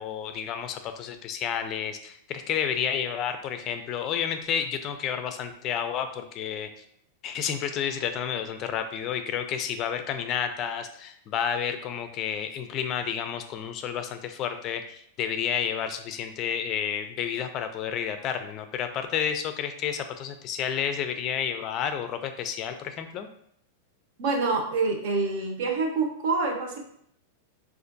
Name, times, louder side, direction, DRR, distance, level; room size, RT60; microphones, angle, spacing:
voice 1, 0.0-6.8 7.2-23.3, left 8 dB, 35° left, 8 dB, 0.4 m, -30 dB
voice 2, 24.2-26.8, right 4 dB, 60° right, 2 dB, 0.9 m, -26 dB
4.3 x 2.4 x 2.6 m, 0.69 s
supercardioid pair, 145°, 0 cm